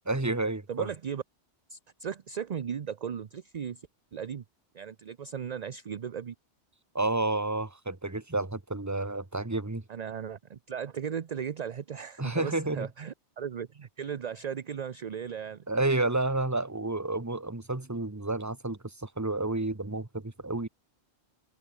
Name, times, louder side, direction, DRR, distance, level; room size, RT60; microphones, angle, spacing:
voice 1, 0.1-0.9 6.9-9.8 12.2-12.9 15.7-20.7, right 2 dB, 15° right, 1.4 m, -30 dB
voice 2, 0.7-1.2 1.7-4.4 4.7-6.3 9.9-15.7, right 7 dB, 45° right, 0.7 m, -37 dB
omnidirectional pair, 1.2 m